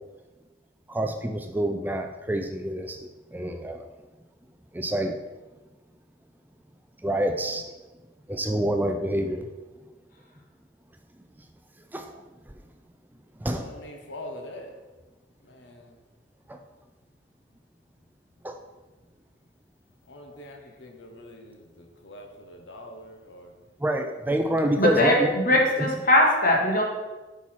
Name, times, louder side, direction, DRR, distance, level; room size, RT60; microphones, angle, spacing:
voice 1, 0.9-3.0 3.3-3.9 4.7-5.2 7.0-7.6 8.3-9.5 11.9-12.1 13.4-13.7 16.5-16.6 18.4-18.6 23.8-25.3, right 1 dB, 10° right, 5 dB, 0.4 m, -27 dB
voice 2, 13.5-14.7 15.4-15.9 20.1-23.5, left 1 dB, 70° left, 3 dB, 1.2 m, -44 dB
voice 3, 24.8-26.8, left 1 dB, 50° left, -1 dB, 1.8 m, -21 dB
8.6 x 5.6 x 4.5 m, 1.2 s
head